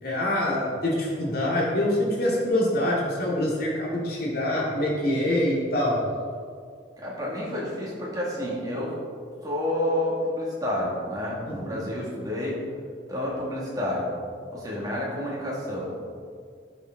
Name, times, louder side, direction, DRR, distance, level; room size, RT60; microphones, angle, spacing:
voice 1, 0.0-6.0 11.5-11.9, left 1 dB, 55° left, -4 dB, 2.3 m, -25 dB
voice 2, 7.0-8.9 9.4-12.6 13.1-14.1 14.5-16.1, left 1 dB, 20° right, -5 dB, 2.3 m, -29 dB
11.0 x 6.9 x 4.0 m, 2.1 s
head